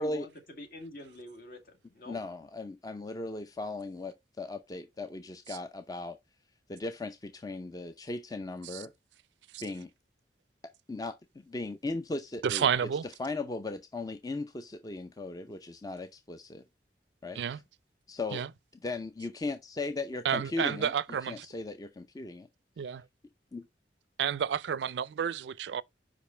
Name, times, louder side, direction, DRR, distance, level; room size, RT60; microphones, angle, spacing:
voice 1, 0.0-2.2, left 1 dB, 55° left, 1.9 m, -46 dB
voice 2, 2.1-6.2 6.7-8.9 9.6-9.9 10.9-12.7 13.0-16.6 17.2-17.4 18.1-18.4 18.8-20.9 21.3-22.5 23.5-23.7, left 2 dB, 20° left, 0.4 m, -37 dB
voice 3, 12.4-13.0 17.4-17.6 18.3-18.5 20.2-21.5 22.8-23.0 24.2-25.8, right 8 dB, 75° right, 0.4 m, -30 dB
5.2 x 5.1 x 4.3 m
head